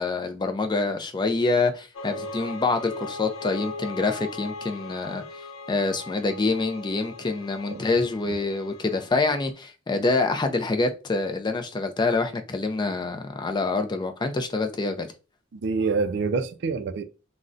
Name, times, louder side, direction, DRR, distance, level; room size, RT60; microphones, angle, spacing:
voice 1, 0.0-5.2 5.7-15.1, left 3 dB, 20° left, 0.3 m, -26 dB
sound 1, 1.9-9.5, left 2 dB, 85° left, 0.5 m, -39 dB
voice 2, 7.7-8.0 15.5-17.0, right 4 dB, 60° right, 0.3 m, -27 dB
3.7 x 2.1 x 2.4 m
head